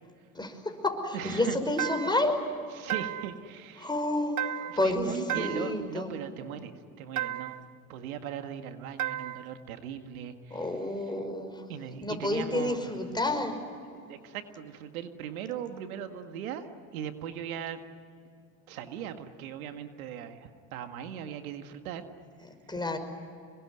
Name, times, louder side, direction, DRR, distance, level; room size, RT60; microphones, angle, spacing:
voice 1, 0.3-2.4 3.8-6.1 10.5-11.6 12.0-13.6 22.7-23.0, left 1 dB, 10° left, 5 dB, 5.5 m, -30 dB
voice 2, 1.1-1.6 2.7-3.9 4.6-7.6 7.9-10.7 11.1-11.2 11.7-12.9 13.9-17.8 18.7-22.0, right 9 dB, 90° right, 7 dB, 1.9 m, -39 dB
sound 1, 1.8-2.3 2.9-3.4 4.4-4.9 5.3-5.8 7.2-7.7 9.0-9.5, right 12 dB, 45° right, 0.9 m, -34 dB
27.0 x 22.5 x 9.8 m, 2.4 s
supercardioid pair, 80°, 41 cm